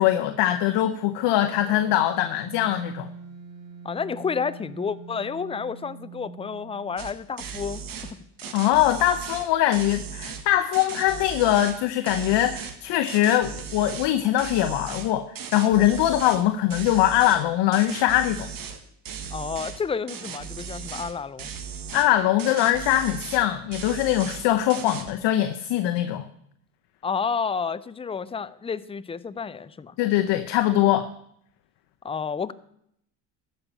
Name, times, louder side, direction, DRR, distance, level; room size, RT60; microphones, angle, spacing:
voice 1, 0.0-3.1 8.5-18.5 21.9-26.3 30.0-31.1, left 13 dB, 65° left, 8 dB, 0.9 m, -22 dB
sound 1, 1.2-7.3, right 5 dB, 65° right, 2.2 m, -44 dB
voice 2, 3.8-7.8 19.3-21.5 27.0-30.0 32.0-32.5, left 6 dB, 15° left, 16 dB, 0.5 m, -30 dB
sound 2, 7.0-7.1 7.4-8.1 8.4-10.4 10.7-11.8 12.0-12.8 13.1-14.1 14.4-16.4 16.7-17.4 17.7-18.8 19.0-19.8 20.1-21.1 21.4-22.1 22.4-23.5 23.7-24.4 24.7-25.1, right 7 dB, 45° right, 1.7 m, -37 dB
13.5 x 5.6 x 8.3 m, 0.72 s
supercardioid pair, 80°, 47 cm